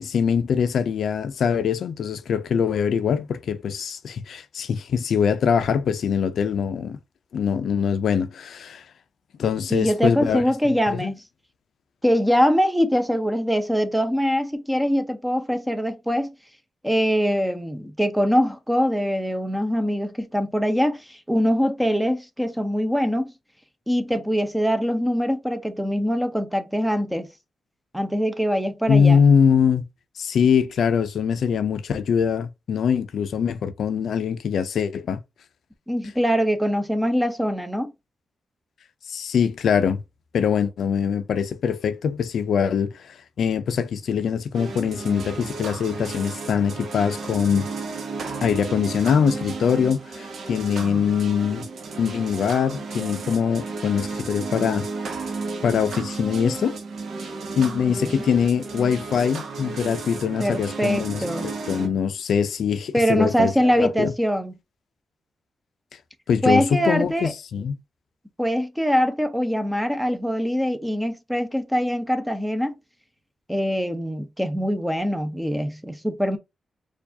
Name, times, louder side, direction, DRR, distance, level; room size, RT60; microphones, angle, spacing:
voice 1, 0.0-7.0 7.3-8.8 9.4-11.1 28.9-29.8 30.2-35.2 39.1-40.0 40.3-47.7 48.4-51.6 52.0-54.8 55.6-56.8 57.6-64.1 66.3-67.8, left 7 dB, 70° left, 0.4 m, -23 dB
voice 2, 9.7-11.2 12.0-16.3 16.8-23.3 23.9-27.3 27.9-29.2 35.9-37.9 60.4-61.5 62.9-64.5 66.4-67.3 68.4-72.8 73.5-76.4, equal, 5° right, 0.6 m, -23 dB
sound 1, 44.5-61.9, right 4 dB, 70° right, 0.8 m, -33 dB
4.6 x 2.4 x 2.7 m
wide cardioid pair, 125°, 0 cm